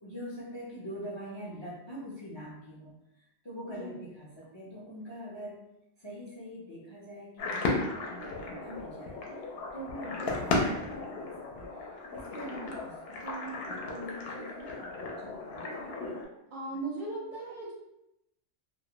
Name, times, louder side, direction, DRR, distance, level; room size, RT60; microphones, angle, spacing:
voice 1, 0.0-2.9 3.4-5.6 6.0-9.4 9.7-11.7 12.1-16.1 16.7-16.8, equal, 40° left, -6 dB, 0.4 m, -44 dB
sound 1, 7.4-16.2, left 2 dB, 65° left, 0.7 m, -35 dB
voice 2, 16.5-17.7, right 2 dB, 60° right, -3 dB, 0.6 m, -37 dB
2.2 x 2.1 x 2.8 m, 0.84 s
omnidirectional pair, 1.2 m